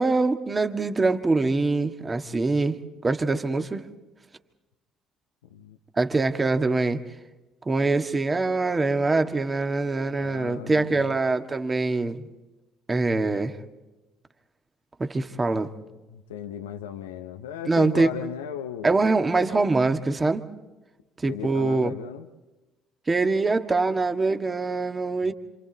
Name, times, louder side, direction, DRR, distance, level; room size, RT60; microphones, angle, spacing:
voice 1, 0.0-3.9 6.0-7.0 7.7-12.3 12.9-13.6 15.0-15.7 17.7-18.1 18.8-20.4 21.2-21.9 23.1-25.3, right 3 dB, 25° right, 6 dB, 1.7 m, -24 dB
voice 2, 10.2-11.1 15.9-18.9 21.3-22.3 25.3-25.4, left 9 dB, 85° left, 8 dB, 0.9 m, -37 dB
28.0 x 27.5 x 4.0 m, 1.1 s
hypercardioid pair, 55°, 0 cm